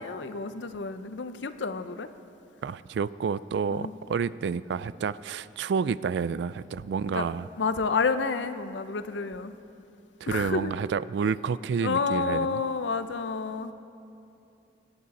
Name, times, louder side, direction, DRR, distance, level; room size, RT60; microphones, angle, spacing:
voice 1, 0.0-2.1 3.7-3.9 7.1-7.3 7.6-9.5 10.3-10.7 11.8-13.7, left 4 dB, 85° left, 11 dB, 0.6 m, -29 dB
voice 2, 2.6-7.5 10.2-12.6, right 6 dB, 75° right, 18 dB, 0.3 m, -29 dB
25.5 x 8.9 x 4.1 m, 2.8 s
head